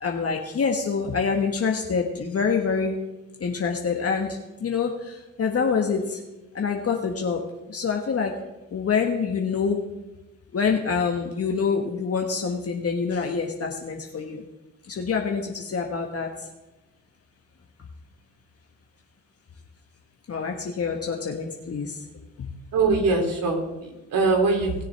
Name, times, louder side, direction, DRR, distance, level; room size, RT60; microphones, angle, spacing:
voice 1, 0.0-2.9 3.4-4.4 4.6-4.9 5.4-6.2 6.5-7.4 7.7-8.3 8.7-9.8 10.5-14.4 14.9-16.3 20.3-21.9 22.4-22.5, left 5 dB, 40° left, 2 dB, 1.4 m, -26 dB
voice 2, 22.7-24.7, right 3 dB, 65° right, 1 dB, 3.0 m, -22 dB
19.5 x 7.1 x 3.4 m, 1.0 s
hypercardioid pair, 55°, 36 cm